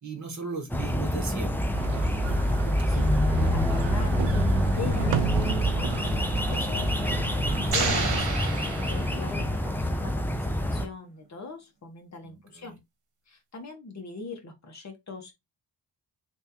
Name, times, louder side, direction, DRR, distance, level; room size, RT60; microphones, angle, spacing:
voice 1, 0.0-1.8 12.2-12.7, right 4 dB, 40° right, 1.5 m, -37 dB
sound 1, 0.7-10.9, left 1 dB, 5° left, 0.3 m, -26 dB
sound 2, 1.7-8.2, right 5 dB, 80° right, 0.6 m, -30 dB
voice 2, 2.9-12.8 13.3-15.3, left 4 dB, 40° left, 1.3 m, -41 dB
sound 3, 7.7-9.6, right 4 dB, 60° right, 1.5 m, -30 dB
3.4 x 3.3 x 2.8 m
wide cardioid pair, 150°, 44 cm